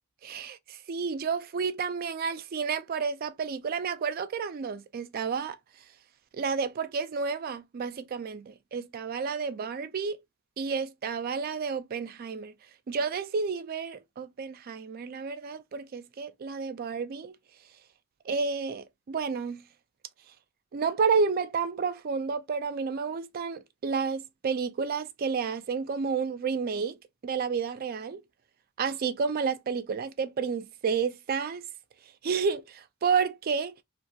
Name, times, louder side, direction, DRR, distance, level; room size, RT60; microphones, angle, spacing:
voice 1, 0.2-5.6 6.3-10.2 10.6-12.5 12.9-17.4 18.3-19.6 20.7-27.0 27.2-28.2 28.8-31.7 32.2-33.8, right 5 dB, 45° right, 0.3 m, -30 dB
2.4 x 2.3 x 2.6 m
head